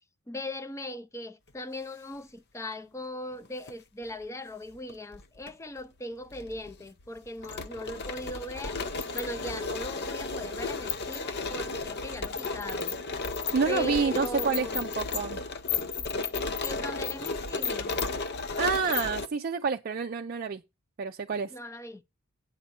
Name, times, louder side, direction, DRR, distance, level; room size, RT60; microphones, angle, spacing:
voice 1, 0.3-8.8 9.1-12.9 13.7-14.8 16.4-17.9 21.3-22.0, left 1 dB, 15° left, 0.5 m, -39 dB
sound 1, 3.5-3.7 4.8-5.5 5.8-5.9 6.3-19.3, left 4 dB, 50° left, 0.7 m, -33 dB
voice 2, 13.5-15.4 18.6-20.6 21.0-21.5, right 5 dB, 45° right, 0.4 m, -28 dB
9.2 x 6.6 x 4.4 m
head